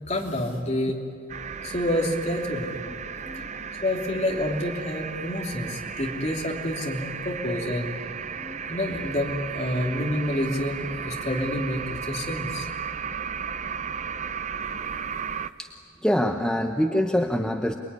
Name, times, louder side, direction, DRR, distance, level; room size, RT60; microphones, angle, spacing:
voice 1, 0.1-1.0 1.6-2.8 3.8-8.0 8.7-12.7, left 1 dB, 35° left, 0 dB, 3.1 m, -28 dB
sound 1, 1.3-15.5, right 6 dB, 35° right, 0.6 m, -35 dB
voice 2, 16.0-17.8, equal, 5° left, 4 dB, 0.8 m, -25 dB
27.5 x 21.0 x 9.8 m, 2.3 s
head